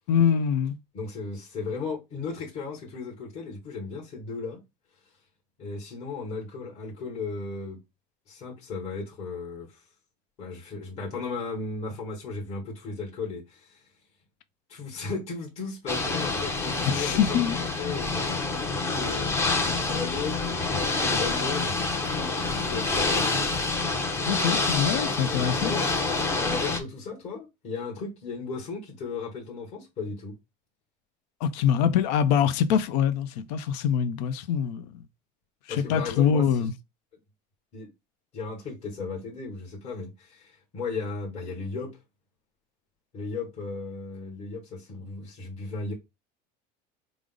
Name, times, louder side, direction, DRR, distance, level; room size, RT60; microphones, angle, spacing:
voice 1, 0.1-0.8 16.9-17.6 24.3-25.7 31.4-35.0 35.7-36.7, left 8 dB, 90° left, 0.6 m, -24 dB
voice 2, 0.9-4.6 5.6-7.8 8.3-9.9 10.4-13.8 14.7-19.3 19.7-20.4 20.7-23.6 25.2-25.9 26.4-30.4 35.7-36.7 37.7-37.9 38.3-42.0 43.1-45.9, left 4 dB, 30° left, 1.1 m, -36 dB
Ocean / Boat Water vehicle, 15.9-26.8, left 3 dB, 10° left, 0.5 m, -27 dB
5.0 x 2.0 x 3.7 m
cardioid pair, 170°, 21 cm